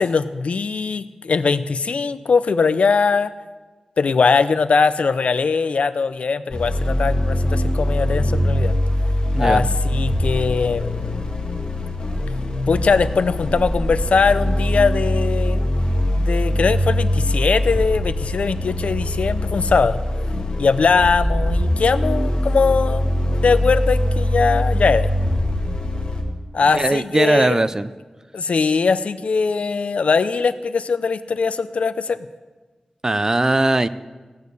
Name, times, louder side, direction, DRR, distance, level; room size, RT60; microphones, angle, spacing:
voice 1, 0.0-3.3 4.0-8.8 9.4-11.3 12.7-15.6 16.2-20.0 20.6-25.1 26.5-27.6 28.3-32.2, left 5 dB, 80° left, 13 dB, 0.6 m, -20 dB
sound 1, 6.5-26.2, left 1 dB, 45° left, 2.3 m, -22 dB
voice 2, 26.7-27.9 33.0-33.9, right 2 dB, 30° right, 14 dB, 0.5 m, -19 dB
16.5 x 6.5 x 8.2 m, 1.3 s
wide cardioid pair, 85°, 2 cm